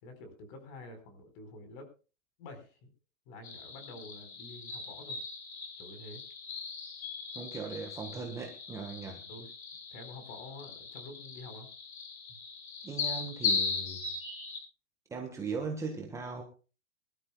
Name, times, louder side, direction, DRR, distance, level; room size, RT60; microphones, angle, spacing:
voice 1, 0.0-1.9 2.4-2.9 3.3-5.2 5.8-6.2 9.3-9.5 9.9-11.7 12.3-12.4, left 2 dB, 35° left, 8 dB, 4.5 m, -48 dB
sound 1, 3.4-14.6, left 5 dB, 75° left, 6.9 m, -38 dB
voice 2, 7.3-9.2 12.8-14.0 15.1-16.4, right 4 dB, 5° right, 1 dB, 1.3 m, -38 dB
24.5 x 12.5 x 2.3 m, 0.35 s
hypercardioid pair, 165°, 42 cm